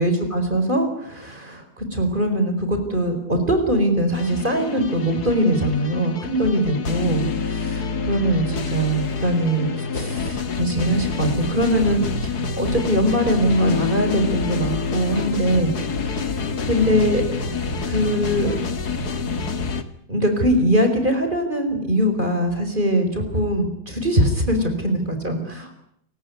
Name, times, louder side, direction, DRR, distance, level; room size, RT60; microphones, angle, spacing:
voice 1, 0.0-15.7 16.2-16.3 16.7-17.2 17.8-18.5 20.1-25.7, right 1 dB, 25° right, 6 dB, 4.7 m, -22 dB
sound 1, 4.1-19.8, left 4 dB, 60° left, 2.3 m, -27 dB
29.0 x 18.0 x 9.7 m, 0.73 s
omnidirectional pair, 1.9 m